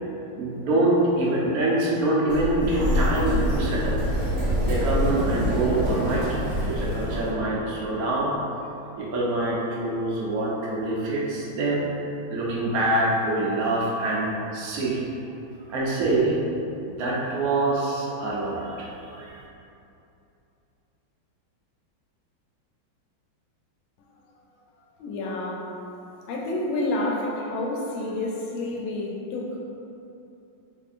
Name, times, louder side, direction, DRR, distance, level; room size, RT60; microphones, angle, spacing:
voice 1, 0.4-4.0 4.6-8.4 9.0-11.8 12.3-15.0 15.7-16.4 16.9-19.4, right 2 dB, 80° right, -5 dB, 0.8 m, -25 dB
Sliding door, 2.3-7.3, equal, 50° right, 0.9 m, -25 dB
voice 2, 25.0-25.7 26.2-29.6, left 2 dB, 80° left, -2 dB, 1.4 m, -29 dB
3.5 x 3.2 x 2.5 m, 2.8 s
omnidirectional pair, 2.2 m